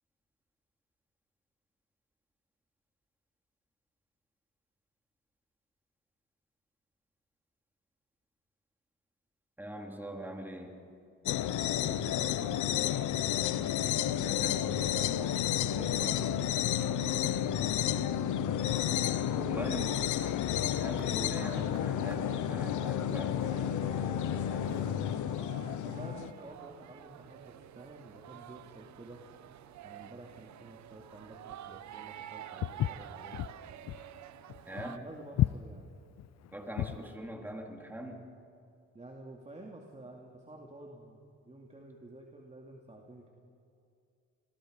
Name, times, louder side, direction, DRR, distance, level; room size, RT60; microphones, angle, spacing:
voice 1, 9.6-10.7 14.2-16.4 19.5-19.9 20.8-24.7 34.7-35.0 36.5-38.2, right 1 dB, 5° right, 1 dB, 3.6 m, -43 dB
sound 1, 11.3-26.3, left 10 dB, 75° left, 0.9 m, -31 dB
voice 2, 11.6-12.9 17.0-18.5 19.2-19.9 24.5-25.2 25.8-29.2 29.8-33.4 34.7-35.9 38.9-43.3, right 2 dB, 20° right, 0 dB, 2.5 m, -49 dB
sound 2, 20.2-35.0, right 11 dB, 70° right, 0.9 m, -49 dB
Walk footsteps, 32.6-37.1, left 13 dB, 60° left, 0.5 m, -32 dB
29.0 x 22.0 x 5.2 m, 2.4 s
cardioid pair, 90°, 30 cm